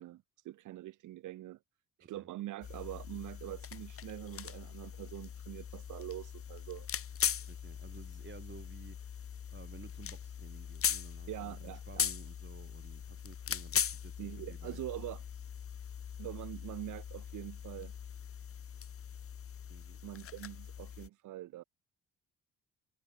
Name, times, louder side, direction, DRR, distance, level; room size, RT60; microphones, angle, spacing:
voice 1, 0.0-1.6 2.0-6.9 11.3-12.1 14.2-15.2 16.2-17.9 20.0-21.6, right 15 dB, 80° right, 1.6 m, -44 dB
sound 1, 2.6-21.1, left 8 dB, 45° left, 1.5 m, -40 dB
voice 2, 7.5-14.8 19.7-20.0, right 6 dB, 40° right, 4.3 m, -54 dB
cardioid pair, 90°, 30 cm